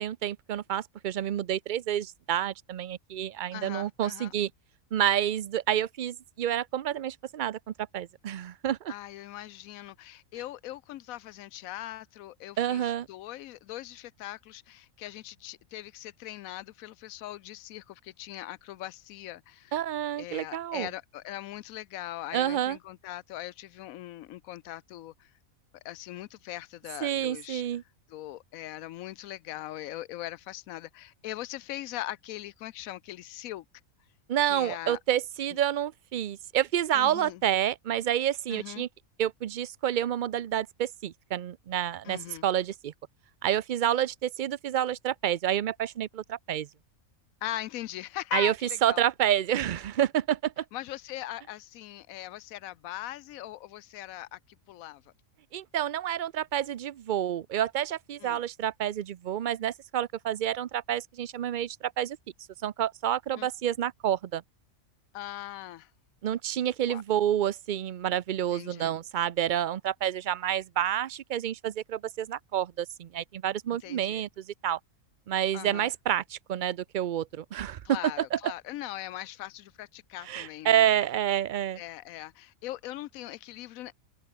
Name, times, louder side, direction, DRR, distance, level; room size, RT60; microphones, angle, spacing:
voice 1, 0.0-4.5 4.9-7.6 7.9-8.9 12.6-13.1 19.7-20.9 22.3-22.8 27.0-27.8 34.3-38.9 39.2-42.9 43.4-46.7 48.3-48.5 48.8-50.6 55.5-62.2 62.6-64.4 66.2-74.8 75.3-78.5 80.3-81.8, right 11 dB, 65° right, 0.4 m, -29 dB
voice 2, 3.5-4.3 8.9-19.8 20.2-25.3 25.8-27.6 28.1-33.6 34.5-35.0 36.9-37.4 38.5-38.8 42.0-42.4 47.4-49.0 50.7-54.4 54.7-55.0 58.2-58.4 63.3-63.5 65.1-65.9 66.9-67.0 68.5-68.9 73.8-74.2 75.5-75.9 77.8-80.9 81.8-83.9, left 14 dB, 80° left, 1.0 m, -40 dB
open air
omnidirectional pair, 1.4 m